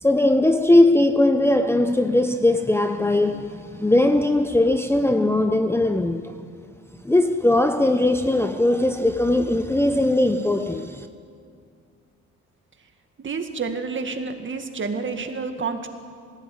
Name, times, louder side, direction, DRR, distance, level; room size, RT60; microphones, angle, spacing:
voice 1, 0.0-6.4 7.0-11.1, left 1 dB, 10° left, 0.8 m, -19 dB
voice 2, 13.2-15.9, right 4 dB, 40° right, 2.2 m, -29 dB
19.0 x 15.5 x 9.5 m
cardioid pair, 90°, 30 cm